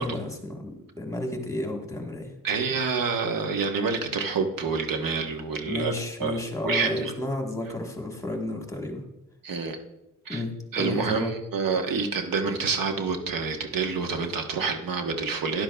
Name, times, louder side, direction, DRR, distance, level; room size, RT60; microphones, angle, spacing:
voice 1, 0.0-2.3 5.7-9.0 10.3-11.3, left 1 dB, 10° left, 2 dB, 1.4 m, -32 dB
voice 2, 2.4-5.9 6.2-6.3 6.6-7.1 9.4-9.8 10.3-10.4 10.7-15.6, right 5 dB, 75° right, 4 dB, 1.2 m, -27 dB
13.0 x 10.5 x 2.3 m, 0.91 s
cardioid pair, 115°, 34 cm